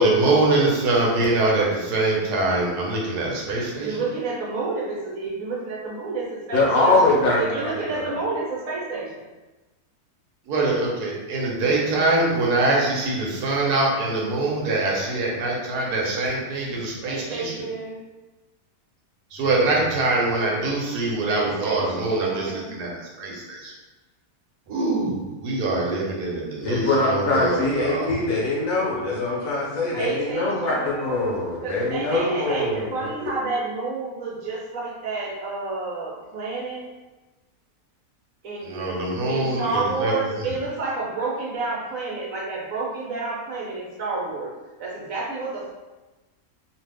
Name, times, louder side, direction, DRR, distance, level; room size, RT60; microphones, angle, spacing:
voice 1, 0.0-4.0 10.5-17.6 19.3-23.7 24.7-28.2 38.6-40.4, right 2 dB, 85° right, -3 dB, 1.3 m, -24 dB
voice 2, 3.8-9.2 17.0-18.0 21.3-22.7 29.9-31.3 31.6-36.8 38.4-39.0 39.3-44.5 44.8-45.7, right 3 dB, 65° right, -4 dB, 1.1 m, -30 dB
voice 3, 6.5-7.4 7.7-8.2 26.6-33.3, left 2 dB, 65° left, -4 dB, 1.1 m, -23 dB
2.7 x 2.4 x 3.3 m, 1.1 s
omnidirectional pair, 1.6 m